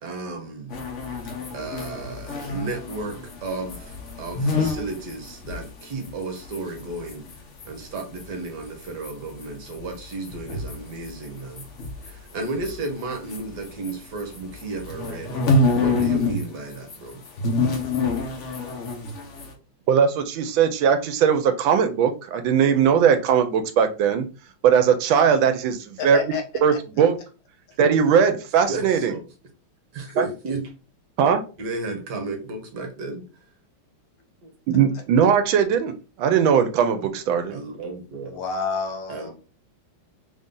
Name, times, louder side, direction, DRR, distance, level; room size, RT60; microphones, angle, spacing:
voice 1, 0.0-0.8 1.5-7.3 7.6-11.7 12.0-17.2 27.8-27.9 28.7-29.2 29.9-30.7 31.6-33.4 34.4-34.5 37.5-38.4 39.1-39.3, right 2 dB, 60° right, 1.3 m, -33 dB
sound 1, 0.7-7.7 7.9-13.9 14.2-16.4 16.7-19.5, left 2 dB, 55° left, 0.8 m, -27 dB
voice 2, 19.9-24.2 24.6-26.2 26.6-27.2 27.8-29.1 30.2-30.3 31.2-31.4 34.7-37.5, right 7 dB, 80° right, 1.3 m, -19 dB
voice 3, 26.0-26.4 38.2-39.3, left 5 dB, 70° left, 1.5 m, -29 dB
3.4 x 2.7 x 3.7 m
omnidirectional pair, 2.2 m